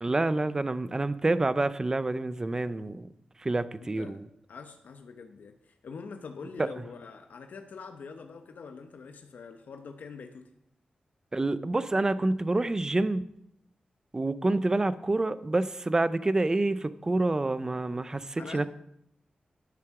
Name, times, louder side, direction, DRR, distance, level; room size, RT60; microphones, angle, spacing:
voice 1, 0.0-3.1 3.4-4.2 11.3-13.2 14.1-18.7, right 2 dB, 20° right, 15 dB, 0.5 m, -27 dB
voice 2, 3.8-4.2 4.5-10.5 18.4-18.7, left 5 dB, 80° left, 6 dB, 0.8 m, -44 dB
11.0 x 7.2 x 5.8 m, 0.76 s
wide cardioid pair, 135°, 3 cm